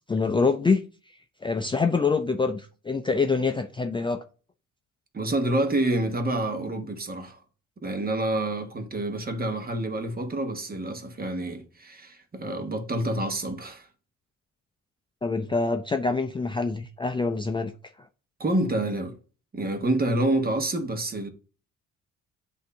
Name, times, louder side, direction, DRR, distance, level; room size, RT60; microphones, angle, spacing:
voice 1, 0.1-0.8 1.4-4.2 15.2-17.7, left 4 dB, 15° left, 0.5 m, -25 dB
voice 2, 5.1-7.4 7.8-13.9 18.4-19.2 19.5-21.3, right 1 dB, 30° right, 1.3 m, -28 dB
7.8 x 2.8 x 5.4 m
cardioid pair, 90°, 30 cm